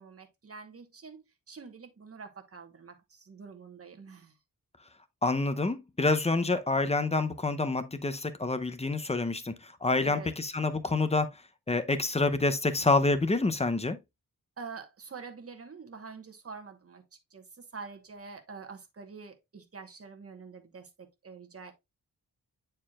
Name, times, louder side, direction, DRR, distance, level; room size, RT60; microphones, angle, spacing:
voice 1, 0.0-4.3 10.0-10.3 14.6-17.0 17.3-21.7, right 5 dB, 40° right, 1.2 m, -46 dB
voice 2, 5.2-11.3 11.7-14.0, left 3 dB, 20° left, 0.7 m, -27 dB
9.2 x 4.5 x 2.4 m
wide cardioid pair, 170°, 36 cm